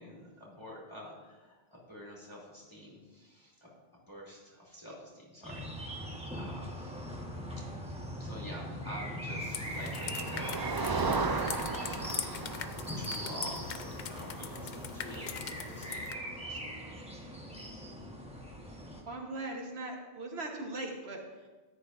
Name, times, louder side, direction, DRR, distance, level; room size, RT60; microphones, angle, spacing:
voice 1, 0.0-3.7 4.1-7.2 7.6-16.4, equal, 25° left, -5 dB, 3.0 m, -48 dB
sound 1, 5.4-19.0, equal, 5° right, 1.2 m, -41 dB
Motor vehicle (road), 9.0-16.7, right 4 dB, 40° right, 0.3 m, -37 dB
sound 2, 9.4-16.1, left 7 dB, 55° left, 0.6 m, -42 dB
voice 2, 19.1-21.5, right 2 dB, 75° right, 1 dB, 1.5 m, -40 dB
13.5 x 10.0 x 2.5 m, 1.3 s
omnidirectional pair, 1.1 m